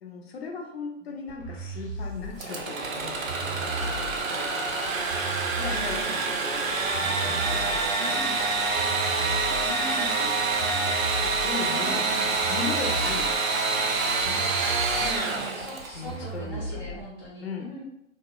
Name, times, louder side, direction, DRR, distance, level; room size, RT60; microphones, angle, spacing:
voice 1, 0.0-4.7 5.2-8.6 9.2-9.7 9.9-10.6 11.2-15.5 15.9-16.9 17.4-17.7, left 5 dB, 55° left, 1 dB, 0.5 m, -39 dB
sound 1, 1.3-17.3, right 2 dB, 20° left, 0.7 m, -36 dB
Engine / Sawing, 2.4-16.1, right 3 dB, 85° right, 0.5 m, -27 dB
voice 2, 5.6-6.3 7.9-8.4 9.6-10.3 11.7-12.3 15.0-17.8, right 1 dB, 10° right, -15 dB, 0.4 m, -40 dB
2.7 x 2.0 x 2.3 m, 0.80 s
figure-of-eight pair, 135°, 39 cm